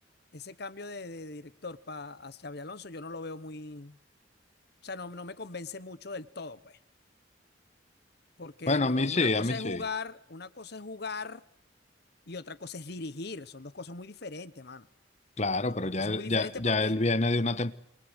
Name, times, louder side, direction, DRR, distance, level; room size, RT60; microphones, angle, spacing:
voice 1, 0.3-4.0 4.8-6.8 8.4-11.4 12.3-14.9 15.7-17.0, left 3 dB, 55° left, 1.2 m, -40 dB
voice 2, 8.7-9.8 15.4-17.7, left 2 dB, 35° left, 1.3 m, -27 dB
28.5 x 24.0 x 8.1 m
head